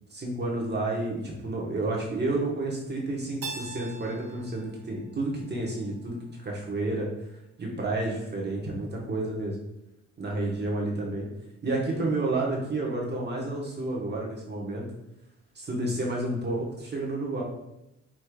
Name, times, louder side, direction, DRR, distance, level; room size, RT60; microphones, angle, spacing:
voice 1, 0.1-7.1 7.6-9.6 10.2-11.3 11.6-14.8 15.5-17.4, right 2 dB, 35° right, -2 dB, 1.2 m, -30 dB
Keyboard (musical), 3.4-6.2, right 4 dB, 50° right, 0.8 m, -42 dB
4.8 x 4.3 x 2.3 m, 0.87 s
cardioid pair, 90°, 30 cm